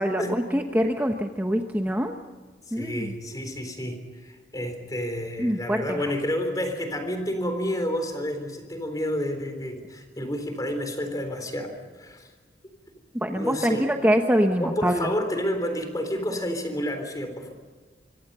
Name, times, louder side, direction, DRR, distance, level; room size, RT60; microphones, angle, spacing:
voice 1, 0.0-2.2 2.7-3.1 5.4-6.0 13.1-15.1, equal, 10° right, 3 dB, 1.0 m, -24 dB
voice 2, 2.7-12.3 13.3-13.9 14.6-17.5, equal, 20° left, 6 dB, 3.8 m, -30 dB
25.0 x 24.5 x 5.6 m, 1.4 s
head